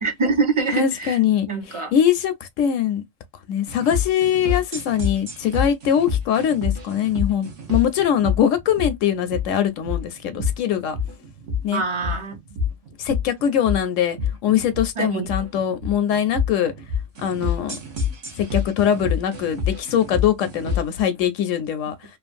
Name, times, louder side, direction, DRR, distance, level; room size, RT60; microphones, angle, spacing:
voice 1, 0.0-1.2 1.5-1.9 11.7-12.3 15.0-15.3, right 4 dB, 30° right, 0.6 m, -24 dB
voice 2, 0.7-3.0 3.5-11.0 11.6-11.8 13.0-14.2 14.4-16.7 17.2-17.8 18.4-22.1, left 9 dB, 80° left, 0.9 m, -22 dB
sound 1, 3.7-21.0, left 5 dB, 60° right, 1.1 m, -28 dB
3.0 x 2.2 x 2.5 m
omnidirectional pair, 1.3 m